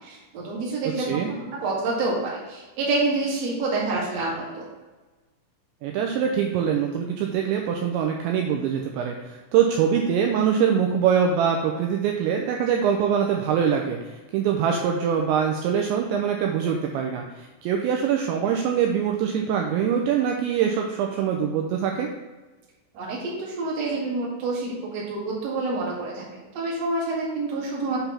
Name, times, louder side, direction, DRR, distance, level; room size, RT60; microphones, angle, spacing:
voice 1, 0.0-4.6 22.9-26.2 26.5-28.0, right 3 dB, 50° right, -4 dB, 2.1 m, -27 dB
voice 2, 1.0-1.3 5.8-22.1, right 7 dB, 85° right, 2 dB, 2.7 m, -23 dB
8.0 x 3.4 x 5.7 m, 1.2 s
omnidirectional pair, 5.6 m